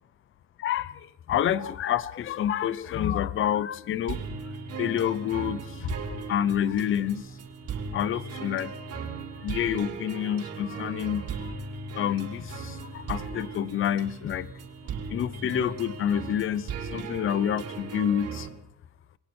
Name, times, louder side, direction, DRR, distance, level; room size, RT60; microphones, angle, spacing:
voice 1, 0.6-0.9 1.3-4.2 4.8-5.9 6.3-7.2 7.9-8.7 9.4-11.5 11.9-14.5 15.1-18.5, left 10 dB, 45° left, 17 dB, 0.8 m, -28 dB
sound 1, 4.1-18.5, right 5 dB, 55° right, 4.1 m, -37 dB
29.5 x 21.5 x 4.5 m, 0.73 s
cardioid pair, 170°, 30 cm